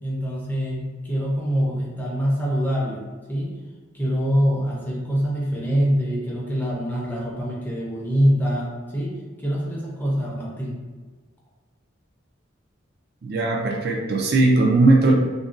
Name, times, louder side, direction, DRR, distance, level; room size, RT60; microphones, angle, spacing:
voice 1, 0.0-3.0 3.3-3.6 3.9-10.8, equal, 10° left, -5 dB, 0.5 m, -24 dB
voice 2, 13.2-15.1, right 2 dB, 50° right, 0 dB, 0.4 m, -18 dB
2.6 x 2.1 x 3.6 m, 1.3 s
head